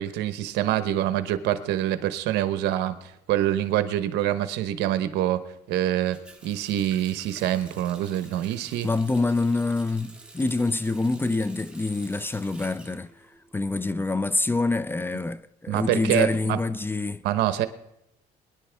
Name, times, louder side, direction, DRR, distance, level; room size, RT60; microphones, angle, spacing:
voice 1, 0.0-5.4 5.7-8.9 15.7-16.6 17.2-17.7, right 12 dB, 85° right, 1.0 m, -25 dB
Water tap faucet, 6.1-13.9 14.2-15.2, right 2 dB, 5° right, 1.9 m, -49 dB
voice 2, 8.8-13.1 13.5-17.2, left 3 dB, 15° left, 0.4 m, -26 dB
22.5 x 10.5 x 3.4 m
cardioid pair, 110°, 17 cm